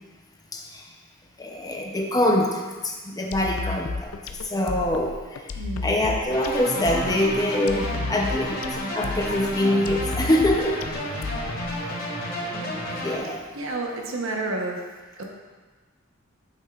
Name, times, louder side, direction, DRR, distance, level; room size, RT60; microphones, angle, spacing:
voice 1, 0.5-0.8 1.4-4.1 4.4-5.4 5.8-8.6 8.9-10.8 12.5-12.8 13.0-13.4, left 1 dB, 20° left, 1 dB, 0.6 m, -24 dB
sound 1, 3.3-11.9, left 3 dB, 85° left, 0.4 m, -33 dB
voice 2, 5.5-5.9 12.1-12.3 13.5-14.8 15.2-15.3, right 2 dB, 70° right, 0 dB, 1.0 m, -30 dB
sound 2, 6.3-13.2, equal, 45° left, 2.1 m, -31 dB
8.5 x 6.2 x 2.4 m, 1.3 s
head